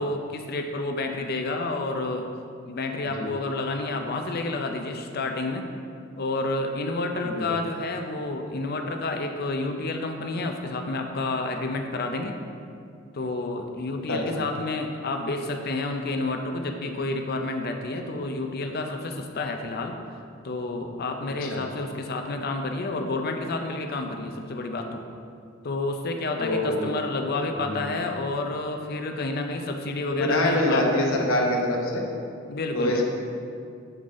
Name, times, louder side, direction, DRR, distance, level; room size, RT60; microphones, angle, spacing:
voice 1, 0.0-2.3 2.7-5.6 6.2-12.4 13.1-20.0 20.4-25.1 25.6-31.1 32.5-33.0, left 2 dB, 50° left, 5 dB, 0.5 m, -30 dB
voice 2, 14.1-14.4 21.4-21.6 26.4-26.9 27.6-27.9 30.1-32.0 32.7-33.0, left 1 dB, 90° left, 0 dB, 0.9 m, -25 dB
7.9 x 3.9 x 3.7 m, 2.3 s
head